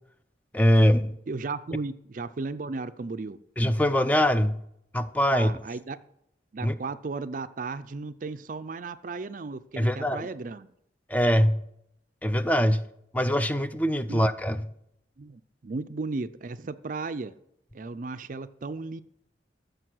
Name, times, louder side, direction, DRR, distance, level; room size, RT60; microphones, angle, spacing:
voice 1, 0.5-1.2 3.6-4.6 4.9-5.5 6.6-6.7 9.8-10.3 11.1-11.6 12.2-12.8 13.1-14.7, equal, 10° left, 11 dB, 0.5 m, -23 dB
voice 2, 1.3-3.4 5.3-6.0 6.5-10.7 14.1-14.2 15.2-17.3 17.7-19.0, right 3 dB, 45° right, 13 dB, 0.4 m, -35 dB
14.0 x 6.7 x 6.2 m, 0.75 s
head